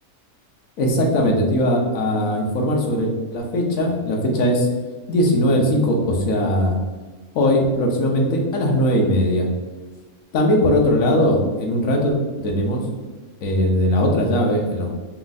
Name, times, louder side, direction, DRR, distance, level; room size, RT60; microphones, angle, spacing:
voice 1, 0.8-4.7 5.1-6.8 7.3-9.5 10.3-12.9 13.4-14.9, equal, 75° left, 1 dB, 1.2 m, -19 dB
4.5 x 2.4 x 3.9 m, 1.3 s
omnidirectional pair, 1.5 m